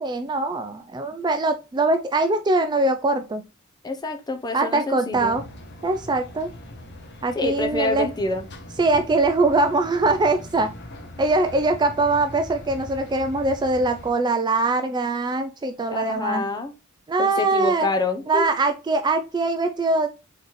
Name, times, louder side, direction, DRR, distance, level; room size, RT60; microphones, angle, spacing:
voice 1, 0.0-3.4 4.5-5.4 5.8-6.5 7.2-8.1 8.8-10.7 11.2-16.5 17.1-17.9 18.3-20.1, right 2 dB, 20° right, 0.3 m, -22 dB
voice 2, 3.8-5.4 7.3-8.5 11.3-11.5 15.9-16.7 17.2-18.5, left 2 dB, 20° left, 0.6 m, -27 dB
sound 1, 5.1-14.1, left 1 dB, 55° left, 1.0 m, -41 dB
4.1 x 3.9 x 3.0 m
head